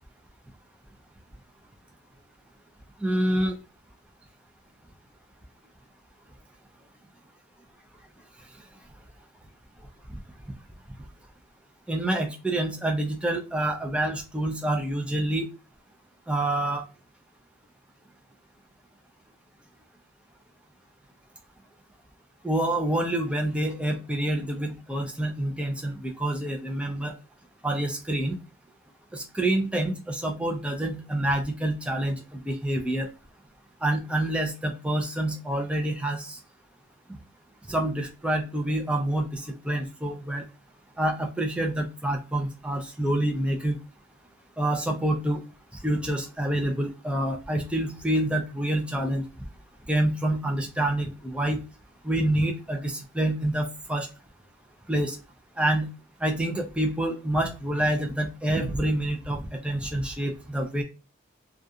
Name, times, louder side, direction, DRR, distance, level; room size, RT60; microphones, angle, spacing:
voice 1, 3.0-3.6 11.9-15.5 16.3-16.8 22.4-27.1 27.6-28.4 29.1-33.1 33.8-36.4 37.7-40.4 41.0-43.8 44.6-45.4 45.8-49.2 49.9-51.6 52.0-54.1 54.9-55.2 55.6-55.9 56.2-60.8, right 1 dB, 5° right, 2 dB, 0.4 m, -27 dB
2.4 x 2.3 x 2.6 m, 0.30 s
head